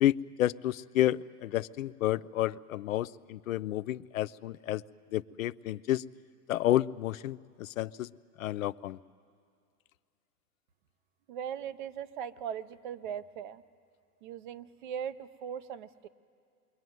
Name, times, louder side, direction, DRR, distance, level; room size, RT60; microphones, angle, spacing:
voice 1, 0.0-4.8 5.1-6.0 6.5-8.1 8.4-9.0, left 13 dB, 60° left, 16 dB, 0.6 m, -30 dB
voice 2, 11.3-13.6 14.2-16.1, right 8 dB, 30° right, 14 dB, 0.6 m, -39 dB
28.0 x 22.5 x 9.4 m, 2.4 s
hypercardioid pair, 150°, 47 cm